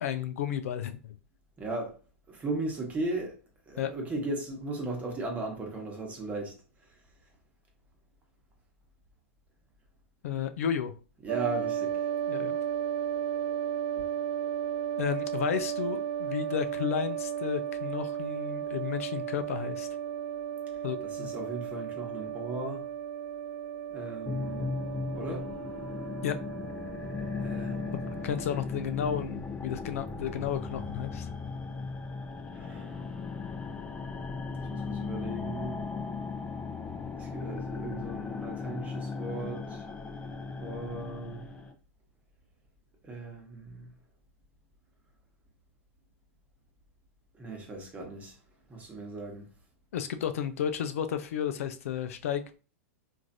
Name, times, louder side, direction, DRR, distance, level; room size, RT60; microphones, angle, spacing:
voice 1, 0.0-1.1 3.8-3.9 10.2-10.9 12.3-12.6 15.0-19.9 20.8-21.3 26.2-26.3 27.9-31.3 49.9-52.6, left 8 dB, 75° left, 0.4 m, -32 dB
voice 2, 1.6-2.0 2.3-3.4 3.7-6.6 11.2-12.0 21.0-22.9 23.9-24.7 25.1-25.5 27.4-28.2 32.5-33.2 34.7-35.8 37.2-39.9 40.6-41.5 43.0-43.9 47.3-48.4 48.7-49.5, right 2 dB, 20° right, 1.1 m, -37 dB
sound 1, 11.3-28.6, right 9 dB, 70° right, 0.3 m, -35 dB
sound 2, 24.3-41.7, left 4 dB, 15° left, 0.5 m, -37 dB
3.1 x 2.5 x 2.6 m
hypercardioid pair, 120°, 8 cm